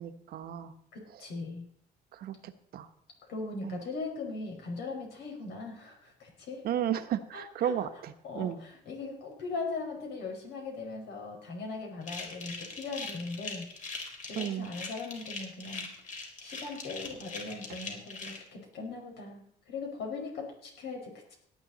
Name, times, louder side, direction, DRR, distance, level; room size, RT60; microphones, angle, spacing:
voice 1, 0.0-0.7 2.1-2.9 3.6-3.8 6.6-8.6 14.3-14.7, right 10 dB, 65° right, 9 dB, 1.1 m, -34 dB
voice 2, 0.9-1.7 3.3-6.6 7.3-7.7 8.2-15.9 16.4-21.3, left 3 dB, 75° left, 1 dB, 5.1 m, -39 dB
sound 1, 12.0-18.4, left 4 dB, 50° left, 3.8 m, -41 dB
17.5 x 10.0 x 4.1 m, 0.67 s
cardioid pair, 110°, 17 cm